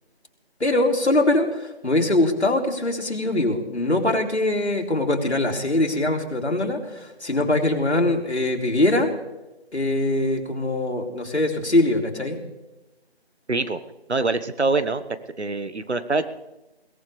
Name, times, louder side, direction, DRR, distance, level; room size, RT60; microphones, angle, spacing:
voice 1, 0.6-9.1 9.7-12.4, left 1 dB, 85° left, 1 dB, 3.3 m, -22 dB
voice 2, 13.5-13.8 14.1-15.0 15.4-16.3, right 3 dB, 85° right, 12 dB, 1.4 m, -24 dB
22.0 x 17.5 x 3.4 m, 1.0 s
figure-of-eight pair, 180°, 33 cm